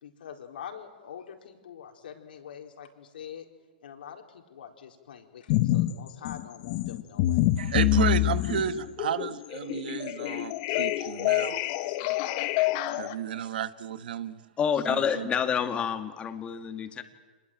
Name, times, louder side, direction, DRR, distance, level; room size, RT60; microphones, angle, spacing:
voice 1, 0.0-3.5 3.8-7.4, left 8 dB, 75° left, 4.1 m, -45 dB
sound 1, 5.5-5.9 6.3-13.1, left 16 dB, 45° left, 1.3 m, -26 dB
voice 2, 7.6-11.6 12.0-12.5 12.9-14.4 14.9-15.3, right 9 dB, 70° right, 1.3 m, -33 dB
voice 3, 14.6-17.0, left 7 dB, 20° left, 2.1 m, -28 dB
26.5 x 20.5 x 9.2 m
hypercardioid pair, 130°, 5 cm